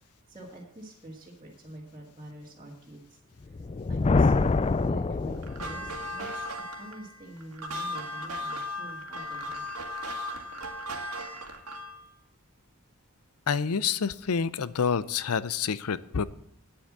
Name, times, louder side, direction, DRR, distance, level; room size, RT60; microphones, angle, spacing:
voice 1, 0.0-3.2 3.5-3.6 3.9-9.6, right 1 dB, 20° right, -6 dB, 2.0 m, -46 dB
Thunder, 3.4-6.1, left 3 dB, 25° left, 0.3 m, -25 dB
sound 1, 5.4-12.0, left 1 dB, 85° right, 1.9 m, -36 dB
voice 2, 13.5-16.2, left 6 dB, 85° left, 17 dB, 0.6 m, -28 dB
9.2 x 8.1 x 7.4 m, 0.69 s
head